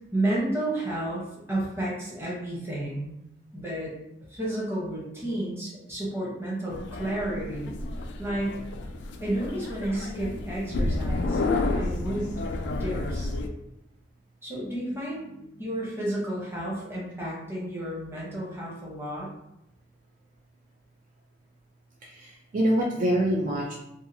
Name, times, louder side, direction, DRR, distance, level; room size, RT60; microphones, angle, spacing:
voice 1, 0.1-1.2 1.5-3.1 3.5-3.9 4.3-7.8 8.2-8.6 9.2-11.4 11.7-12.4 12.6-13.3 14.4-19.3, right 1 dB, 15° right, -5 dB, 0.8 m, -31 dB
sound 1, 6.7-13.5, left 2 dB, 70° left, 0.3 m, -30 dB
voice 2, 22.0-23.7, equal, 45° right, -2 dB, 0.4 m, -25 dB
2.7 x 2.3 x 2.6 m, 0.84 s
head